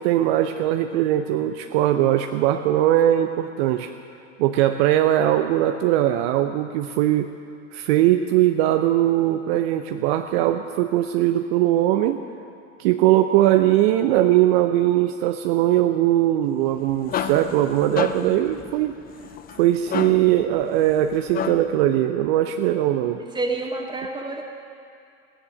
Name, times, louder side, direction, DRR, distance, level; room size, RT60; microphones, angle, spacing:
voice 1, 0.0-3.9 4.4-7.3 7.7-12.2 12.8-19.0 19.6-23.2, right 13 dB, 55° right, 7 dB, 0.7 m, -20 dB
sound 1, 16.6-21.9, left 8 dB, 25° left, 0.6 m, -32 dB
voice 2, 23.3-24.4, right 2 dB, 10° right, 1 dB, 1.9 m, -28 dB
15.5 x 10.0 x 6.3 m, 2.4 s
hypercardioid pair, 85°, 38 cm